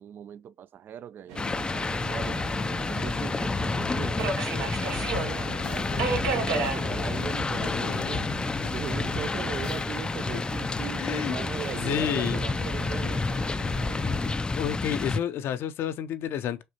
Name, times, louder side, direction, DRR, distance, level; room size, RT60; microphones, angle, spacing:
voice 1, 0.0-4.3 4.8-8.3 8.7-13.3, right 9 dB, 55° right, 0.3 m, -40 dB
Subway metro underground, 1.3-14.3, right 5 dB, 80° right, 0.9 m, -36 dB
sound 1, 1.4-15.2, left 3 dB, 20° left, 0.4 m, -30 dB
sound 2, 4.8-9.8, left 6 dB, 80° left, 1.3 m, -39 dB
voice 2, 7.6-8.2 10.3-10.4 11.0-11.4 11.7-12.4 14.6-16.6, left 9 dB, 65° left, 0.6 m, -30 dB
6.5 x 2.5 x 2.8 m
hypercardioid pair, 65°, 4 cm